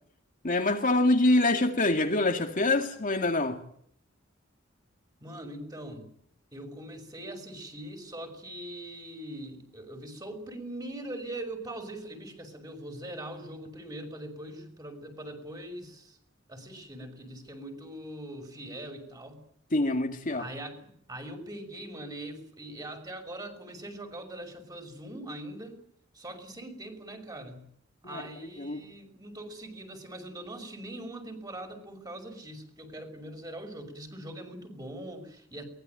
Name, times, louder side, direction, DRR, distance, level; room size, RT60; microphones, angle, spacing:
voice 1, 0.4-3.6 19.7-20.4 28.0-28.2 28.6-28.8, left 2 dB, 45° left, 2.3 m, -25 dB
voice 2, 5.2-6.1 6.5-16.2 16.5-19.4 20.3-25.8 26.1-27.6 28.0-35.6, right 1 dB, 20° right, 5.9 m, -42 dB
23.0 x 20.0 x 9.3 m
head